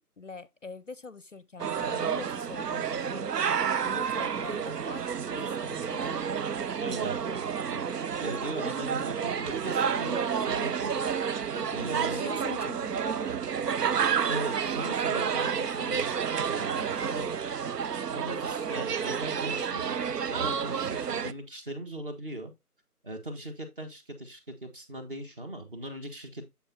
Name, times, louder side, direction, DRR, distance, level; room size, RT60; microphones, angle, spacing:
voice 1, 0.2-3.3 3.8-6.3 10.0-10.4 11.3-13.4, left 4 dB, 55° left, 0.5 m, -43 dB
sound 1, 1.6-21.3, right 7 dB, 85° right, 0.6 m, -30 dB
voice 2, 6.7-7.8 8.2-10.9 11.7-12.3 14.3-16.1 16.5-17.3 18.1-20.0 20.3-22.5 23.0-26.4, right 1 dB, 35° right, 1.3 m, -39 dB
7.0 x 6.9 x 2.7 m
figure-of-eight pair, 160°, 46 cm